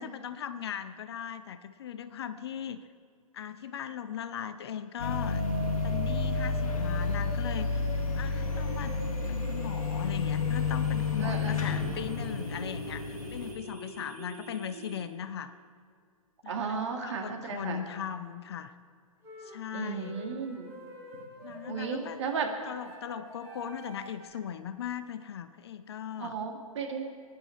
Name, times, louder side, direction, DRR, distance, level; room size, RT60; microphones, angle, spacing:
voice 1, 0.0-2.9 3.3-5.4 5.8-7.9 8.1-8.9 9.3-15.5 16.4-18.7 19.4-20.2 21.4-22.2 22.6-26.4, left 9 dB, 45° left, 12 dB, 0.7 m, -38 dB
sound 1, 5.0-13.5, left 4 dB, 65° left, 1.8 m, -31 dB
sound 2, 5.0-15.0, right 2 dB, 75° right, 2.6 m, -43 dB
voice 2, 11.2-11.9 16.5-17.8 19.7-20.7 21.1-21.2 21.7-22.5 26.2-27.1, right 6 dB, 50° right, 2 dB, 2.2 m, -35 dB
sound 3, 19.2-24.3, equal, 15° right, 3.8 m, -47 dB
23.0 x 10.5 x 4.5 m, 2.1 s
figure-of-eight pair, 120°, 19 cm